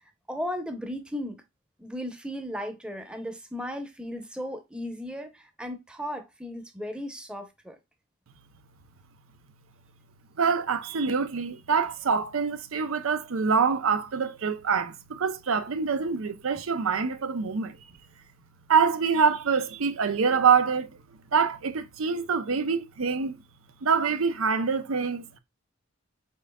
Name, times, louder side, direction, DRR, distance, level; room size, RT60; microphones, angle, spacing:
voice 1, 0.3-1.4 1.8-7.8, equal, 5° right, 0.8 m, -36 dB
voice 2, 10.4-17.8 18.7-21.0 21.3-23.4 23.8-25.4, right 6 dB, 85° right, 0.6 m, -25 dB
5.5 x 3.7 x 2.2 m
head